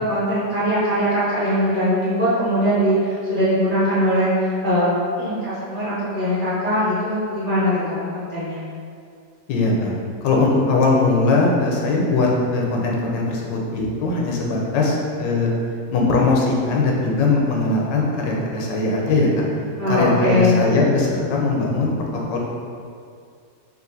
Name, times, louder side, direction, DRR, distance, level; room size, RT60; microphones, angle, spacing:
voice 1, 0.0-4.9 5.2-8.6 19.8-20.6, equal, 35° right, -10 dB, 0.9 m, -21 dB
voice 2, 9.5-9.9 10.2-15.5 15.9-19.4 19.9-21.9 22.3-22.4, left 3 dB, 80° left, -2 dB, 1.4 m, -20 dB
4.1 x 2.4 x 3.9 m, 2.3 s
omnidirectional pair, 1.9 m